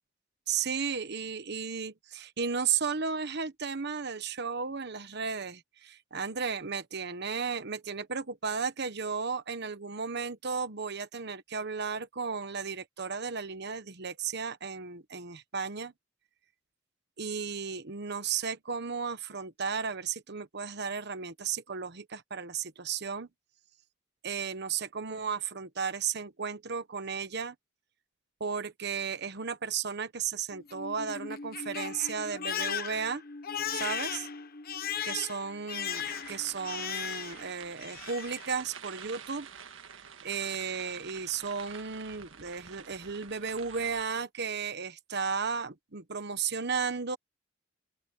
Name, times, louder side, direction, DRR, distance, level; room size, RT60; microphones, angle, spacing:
voice 1, 0.5-15.9 17.2-23.3 24.2-27.5 28.4-33.2 33.7-34.3 35.0-39.5 40.2-47.2, right 6 dB, 60° right, 1.2 m, -34 dB
Crying sobbing, 30.5-37.5 37.8-38.4, left 8 dB, 50° left, 1.0 m, -37 dB
sound 1, 35.9-44.0, right 7 dB, 75° right, 1.6 m, -48 dB
open air
head